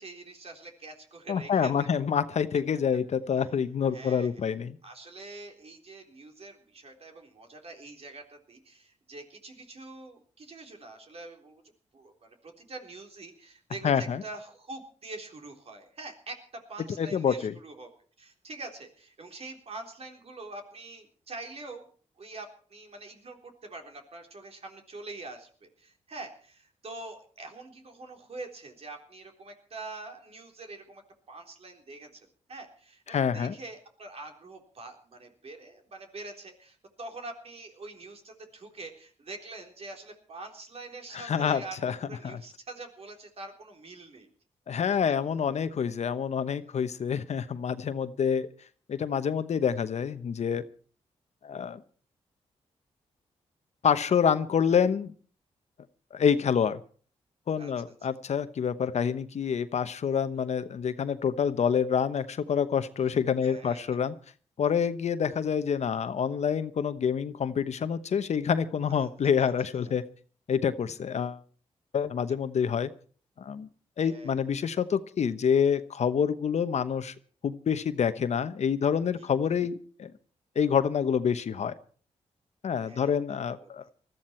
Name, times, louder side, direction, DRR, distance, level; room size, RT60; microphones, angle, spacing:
voice 1, 0.0-1.9 3.9-4.6 4.8-11.6 11.9-17.9 18.2-21.8 22.2-31.0 31.3-41.8 42.0-44.3 57.6-57.7 63.4-64.0 69.0-69.1 69.4-69.5 69.8-69.9 74.0-74.4 79.2-79.3 82.8-83.7, right 2 dB, 55° right, 4 dB, 3.8 m, -45 dB
voice 2, 1.3-4.8 13.8-14.2 17.0-17.5 33.1-33.5 41.1-42.0 42.2-42.4 44.7-48.5 48.9-50.6 51.4-51.8 53.8-55.1 56.1-56.8 57.5-64.1 64.6-70.0 70.5-71.4 71.9-72.9 73.4-73.7 74.0-77.1 77.4-80.1 80.5-81.7 82.6-83.8, left 7 dB, 65° left, 12 dB, 1.0 m, -27 dB
20.0 x 14.0 x 4.5 m, 0.43 s
cardioid pair, 65°, 12 cm